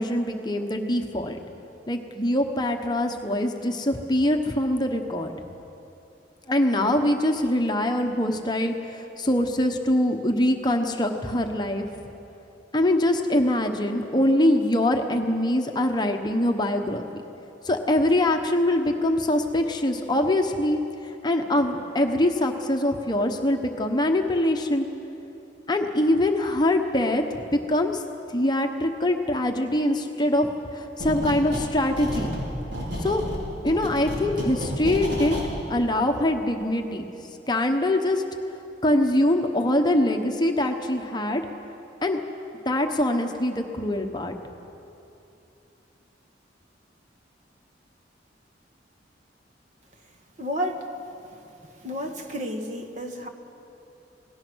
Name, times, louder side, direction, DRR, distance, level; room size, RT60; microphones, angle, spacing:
voice 1, 0.0-1.4 1.9-5.3 6.5-11.9 12.7-17.2 17.6-24.9 25.7-28.0 28.3-32.3 33.0-33.2 33.6-37.0 37.5-38.2 38.8-41.4 42.0-42.2 42.6-44.3, left 1 dB, 25° left, 4 dB, 1.1 m, -23 dB
sound 1, 31.0-31.7 32.0-35.5, equal, 70° right, 5.0 m, -31 dB
voice 2, 50.4-50.8 51.8-53.3, equal, 40° right, 4 dB, 1.7 m, -31 dB
28.0 x 18.5 x 6.3 m, 2.9 s
head